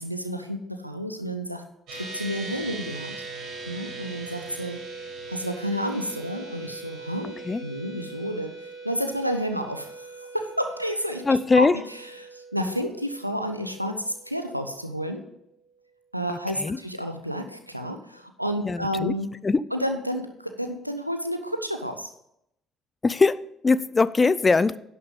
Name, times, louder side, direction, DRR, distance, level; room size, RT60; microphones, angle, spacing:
voice 1, 0.0-1.6 1.9-3.2 3.7-4.8 5.3-7.3 7.6-15.2 16.1-19.3 19.7-22.1, equal, 90° right, 7 dB, 0.6 m, -30 dB
sound 1, 1.9-15.5, right 3 dB, 55° right, 4.7 m, -41 dB
voice 2, 11.3-11.8 16.3-16.8 18.6-19.1 19.4-19.6 23.0-24.8, left 4 dB, 25° left, 18 dB, 0.4 m, -21 dB
11.0 x 6.1 x 5.4 m, 0.79 s
figure-of-eight pair, 50°, 0 cm